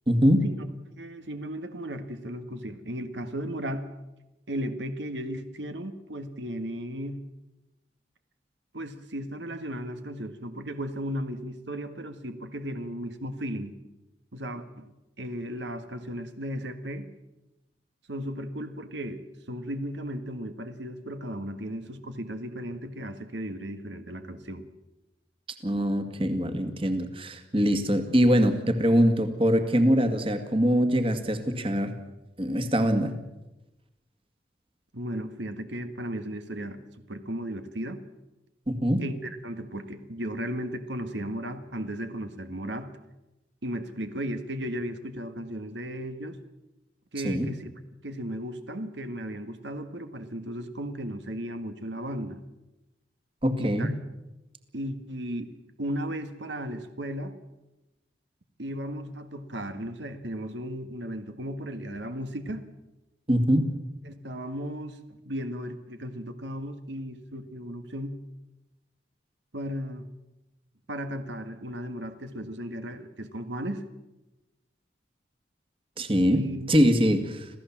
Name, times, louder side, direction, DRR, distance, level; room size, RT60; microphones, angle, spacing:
voice 1, 0.1-0.4 25.6-31.9 32.4-33.2 38.7-39.0 47.2-47.5 53.4-54.0 63.3-63.7 76.0-77.5, equal, 30° right, 8 dB, 2.0 m, -23 dB
voice 2, 0.9-3.9 4.5-7.2 8.7-13.7 14.3-14.9 15.2-17.1 18.1-19.2 19.5-24.6 34.9-36.8 37.1-38.0 39.0-42.9 43.6-46.4 47.1-47.7 48.0-52.4 53.6-53.9 54.7-55.5 55.8-57.3 58.6-62.7 64.0-68.2 69.5-70.1 70.9-73.8 76.3-76.7, equal, 85° right, 8 dB, 1.7 m, -35 dB
27.0 x 16.0 x 7.4 m, 0.99 s
head